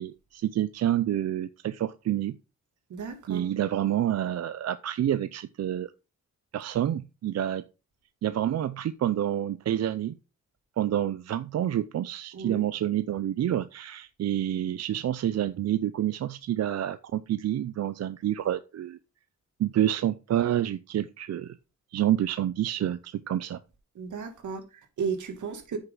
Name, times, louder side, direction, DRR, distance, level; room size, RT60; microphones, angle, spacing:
voice 1, 0.0-2.3 3.3-5.9 6.5-7.6 8.2-10.2 10.8-19.0 19.6-21.6 21.9-23.6, right 11 dB, 60° right, 0.6 m, -28 dB
voice 2, 2.9-3.5 12.3-12.7 23.9-25.8, right 5 dB, 80° right, 2.4 m, -34 dB
9.2 x 6.7 x 3.9 m
cardioid pair, 120°, 30 cm